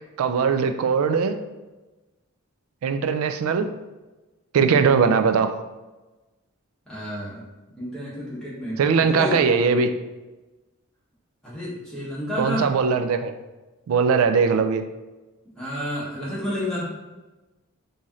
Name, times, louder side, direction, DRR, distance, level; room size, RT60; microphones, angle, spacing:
voice 1, 0.2-1.4 2.8-3.7 4.5-5.6 8.8-9.9 12.4-13.3 13.9-14.8, right 5 dB, 75° right, 8 dB, 0.3 m, -20 dB
voice 2, 6.9-7.4 7.8-8.8 9.1-9.4 11.4-12.7 15.6-16.9, equal, 5° left, -9 dB, 1.2 m, -30 dB
3.1 x 2.7 x 3.6 m, 1.1 s
head